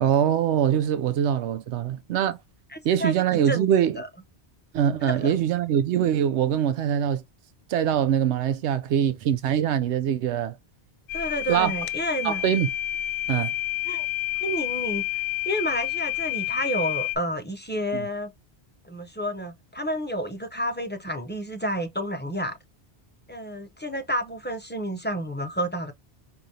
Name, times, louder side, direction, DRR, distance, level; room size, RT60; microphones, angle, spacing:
voice 1, 0.0-2.4 2.8-4.0 4.7-7.2 7.7-10.6 11.5-11.7 12.2-12.7 13.3-13.5 17.9-18.1, right 9 dB, 85° right, 0.9 m, -23 dB
voice 2, 2.7-3.7 3.9-4.1 5.0-5.3 11.1-12.4 13.8-14.1 14.4-18.3 18.8-22.5 23.3-25.9, equal, 15° left, 0.4 m, -30 dB
sound 1, 11.1-17.2, left 16 dB, 70° left, 0.8 m, -29 dB
4.9 x 2.7 x 2.7 m
omnidirectional pair, 1.1 m